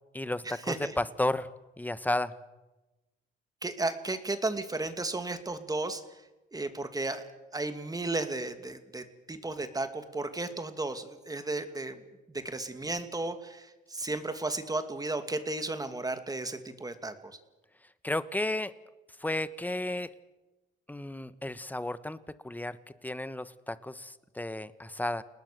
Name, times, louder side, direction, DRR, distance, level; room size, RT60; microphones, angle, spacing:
voice 1, 0.1-1.5 1.8-2.3 18.0-18.7 19.2-20.1 20.9-22.2 22.4-22.8 23.0-25.2, left 1 dB, 10° left, 14 dB, 1.3 m, -33 dB
voice 2, 3.6-6.0 6.5-7.2 7.5-12.0 12.3-17.4, right 2 dB, 20° right, 9 dB, 2.6 m, -34 dB
30.0 x 19.5 x 6.9 m, 1.1 s
cardioid pair, 90°, 20 cm